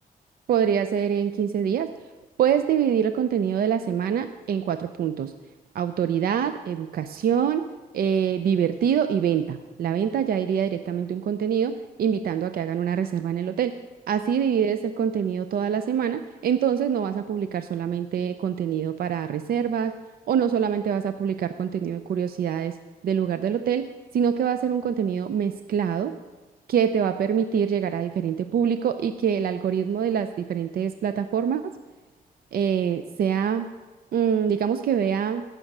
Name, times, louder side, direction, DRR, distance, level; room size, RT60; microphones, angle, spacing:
voice 1, 0.5-1.9 2.4-5.3 5.7-7.6 7.9-13.8 14.1-20.0 20.3-22.8 23.0-26.1 26.7-31.7 32.5-33.7 34.1-35.4, right 8 dB, 80° right, 10 dB, 0.5 m, -25 dB
15.5 x 6.4 x 6.0 m, 1.3 s
wide cardioid pair, 125°, 15 cm